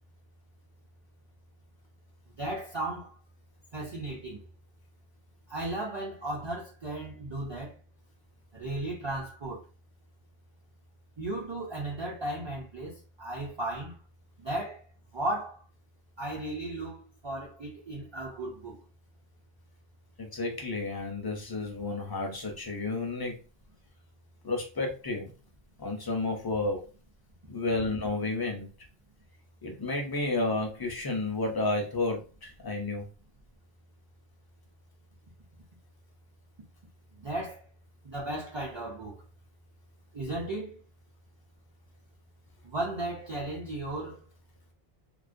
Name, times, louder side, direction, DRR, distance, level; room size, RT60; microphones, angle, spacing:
voice 1, 2.4-3.1 3.7-4.4 5.5-7.7 8.5-9.6 11.2-14.0 14.4-14.8 15.1-15.6 16.2-17.0 17.2-18.8 37.2-37.6 38.0-39.2 40.1-40.8 42.6-44.2, right 1 dB, 40° right, 0.4 m, -35 dB
voice 2, 20.2-23.4 24.4-25.3 25.8-26.8 27.5-28.7 29.6-33.1, left 2 dB, 30° left, 0.4 m, -31 dB
2.3 x 2.1 x 2.5 m
omnidirectional pair, 1.1 m